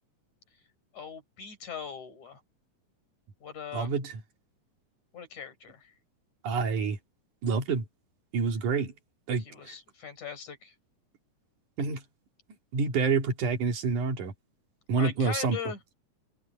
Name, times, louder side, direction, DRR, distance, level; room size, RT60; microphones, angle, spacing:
voice 1, 0.9-2.4 3.4-3.9 5.1-5.9 9.5-10.7 15.0-15.8, left 7 dB, 60° left, 5.6 m, -40 dB
voice 2, 3.7-4.2 6.4-7.0 7.4-7.8 8.3-8.9 9.3-9.8 11.8-12.0 12.7-14.3 14.9-15.6, right 5 dB, 65° right, 3.6 m, -28 dB
open air
omnidirectional pair, 3.8 m